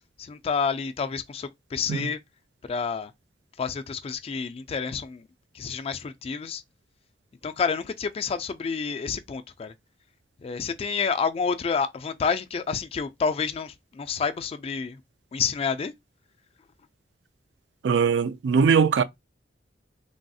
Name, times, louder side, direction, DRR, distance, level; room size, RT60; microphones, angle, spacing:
voice 1, 0.2-2.2 2.7-3.1 3.6-5.2 5.5-6.6 7.4-9.7 10.4-15.0 15.3-15.9, left 5 dB, 35° left, 0.3 m, -29 dB
voice 2, 17.8-19.0, right 6 dB, 75° right, 0.3 m, -20 dB
3.3 x 2.3 x 2.6 m
head